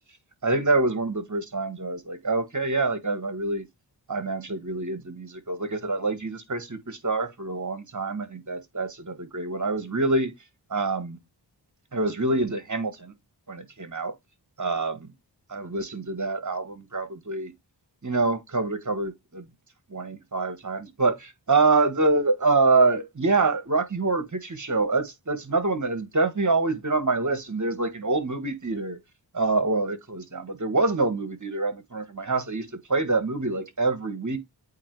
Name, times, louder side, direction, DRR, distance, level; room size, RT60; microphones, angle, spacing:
voice 1, 0.4-3.7 4.1-10.3 10.7-11.2 11.9-13.1 13.5-14.1 14.6-15.1 15.5-17.5 18.0-19.5 19.9-29.0 29.3-34.4, right 3 dB, 45° right, 1.5 m, -26 dB
8.5 x 2.8 x 4.7 m
wide cardioid pair, 60°, 43 cm